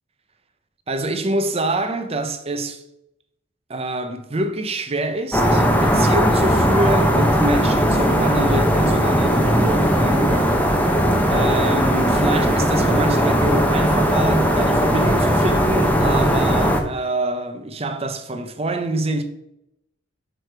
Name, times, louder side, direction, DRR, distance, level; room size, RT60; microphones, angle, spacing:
voice 1, 0.9-2.8 3.7-19.2, right 1 dB, 30° right, 0.7 m, -26 dB
sound 1, 5.3-16.8, equal, 10° left, 0.8 m, -18 dB
6.2 x 4.9 x 4.7 m
head